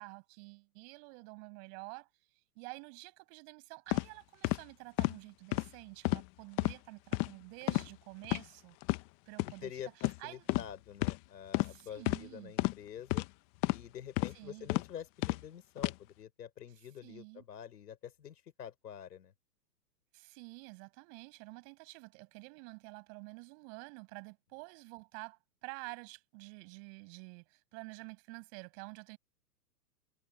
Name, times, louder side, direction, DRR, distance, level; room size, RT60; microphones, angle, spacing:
voice 1, 0.0-2.1 2.5-8.8 9.3-9.7 10.0-10.5 11.6-12.5 14.3-14.7 17.0-17.4 20.1-29.2, right 40 dB or more, 40° right, 8.0 m, -49 dB
sound 1, 3.9-4.1 4.4-4.6 5.0-5.2 5.5-5.7 6.0-6.3 6.6-6.7 7.1-7.3 7.7-7.9 8.2-8.4 8.8-9.0 9.4-9.5 10.0-10.2 10.5-10.7 11.0-11.2 11.5-11.7 12.1-12.2 12.6-12.7 13.1-13.3 13.6-13.8 14.2-14.3 14.7-14.8 15.2-15.4 15.8-15.9, left 25 dB, 30° left, 1.2 m, -31 dB
voice 2, 9.4-13.2 13.7-19.3, left 9 dB, 75° left, 5.8 m, -47 dB
hypercardioid pair, 130°, 49 cm